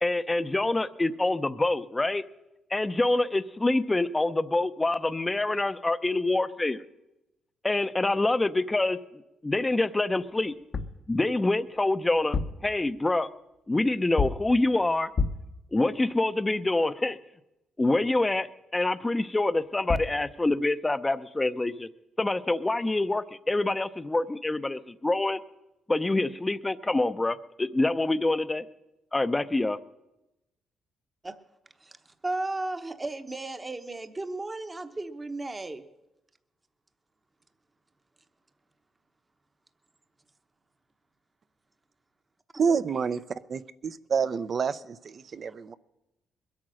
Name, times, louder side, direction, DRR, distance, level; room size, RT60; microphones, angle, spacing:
voice 1, 0.0-2.2 2.7-6.8 7.6-9.0 9.4-10.5 11.1-13.3 13.7-15.1 15.7-17.2 17.8-21.9 22.2-25.4 25.9-28.7 29.1-29.8, left 2 dB, 20° left, 13 dB, 0.6 m, -26 dB
sound 1, 10.5-11.1 12.2-12.7 14.2-14.5 15.2-15.6 19.6-19.7 19.9-20.2, left 4 dB, 45° left, 0.8 m, -29 dB
voice 2, 32.2-35.8, right 2 dB, 20° right, 9 dB, 0.9 m, -34 dB
voice 3, 42.6-43.2 43.5-45.7, right 6 dB, 50° right, 14 dB, 0.6 m, -28 dB
21.5 x 8.7 x 6.3 m, 0.94 s
cardioid pair, 90°, 0 cm